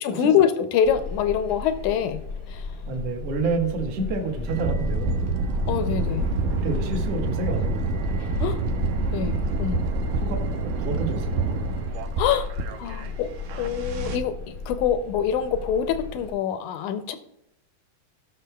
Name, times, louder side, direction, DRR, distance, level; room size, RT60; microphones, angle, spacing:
voice 1, 0.0-2.2 2.5-2.7 5.7-6.3 8.4-8.6 9.1-9.8 12.2-12.5 12.8-17.2, left 8 dB, 80° left, 9 dB, 1.8 m, -25 dB
sound 1, 0.8-16.3, left 4 dB, 40° left, 0.7 m, -36 dB
voice 2, 2.9-5.3 6.5-8.1 10.0-10.4 10.6-11.8, right 3 dB, 55° right, 2 dB, 2.0 m, -29 dB
sound 2, 4.5-14.2, right 3 dB, 75° right, 2.2 m, -27 dB
16.5 x 6.3 x 2.2 m, 0.83 s
omnidirectional pair, 3.9 m